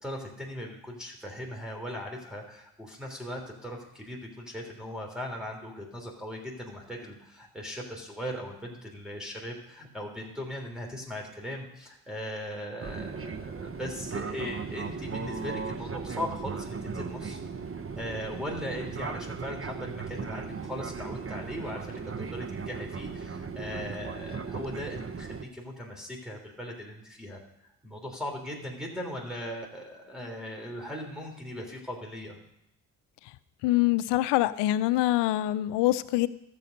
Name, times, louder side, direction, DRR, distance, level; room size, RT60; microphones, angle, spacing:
voice 1, 0.0-17.4 18.0-27.4 27.8-32.4, left 1 dB, ahead, -2 dB, 3.3 m, -39 dB
Fixed-wing aircraft airplane, 12.8-25.4, right 5 dB, 30° right, 1.0 m, -37 dB
voice 2, 33.6-36.3, left 15 dB, 75° left, 15 dB, 0.6 m, -24 dB
12.5 x 7.6 x 5.3 m, 0.81 s
hypercardioid pair, 45°, 42 cm